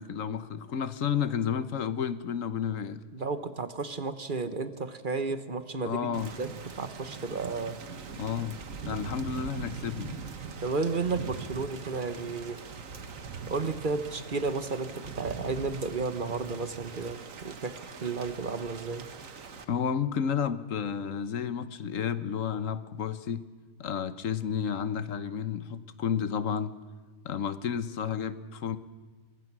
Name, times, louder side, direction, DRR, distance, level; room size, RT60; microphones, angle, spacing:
voice 1, 0.0-3.0 5.8-6.3 8.2-8.6 8.9-10.1 19.7-23.4 23.8-26.7 27.2-28.8, left 7 dB, 85° left, 14 dB, 1.4 m, -31 dB
voice 2, 3.1-6.5 6.8-7.8 10.6-12.6 13.5-19.1, right 4 dB, 40° right, 11 dB, 1.2 m, -33 dB
Thunder / Rain, 6.1-19.6, right 5 dB, 90° right, 1.8 m, -42 dB
23.5 x 20.0 x 6.1 m, 1.4 s
omnidirectional pair, 1.3 m